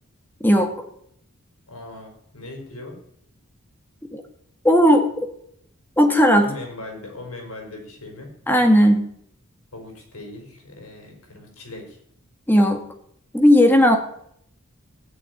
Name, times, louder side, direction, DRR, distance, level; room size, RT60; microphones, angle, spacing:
voice 1, 1.7-3.0 6.4-8.3 9.7-12.0, left 2 dB, 80° left, 3 dB, 5.2 m, -38 dB
voice 2, 4.6-5.0 6.0-6.5 8.5-9.1 12.5-12.8 13.3-14.0, equal, 10° left, 4 dB, 1.9 m, -15 dB
15.5 x 6.9 x 9.9 m, 0.69 s
head